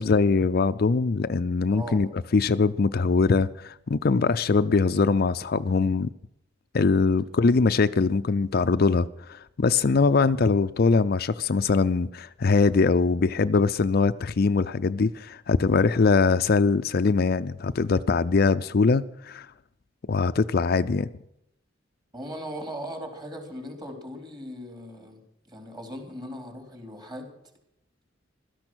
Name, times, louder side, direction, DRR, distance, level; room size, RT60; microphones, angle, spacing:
voice 1, 0.0-6.1 6.7-19.5 20.1-21.1, left 4 dB, 50° left, 11 dB, 0.5 m, -22 dB
voice 2, 1.7-2.1 22.1-27.3, equal, 25° right, 3 dB, 3.6 m, -38 dB
16.5 x 13.0 x 6.3 m, 0.77 s
head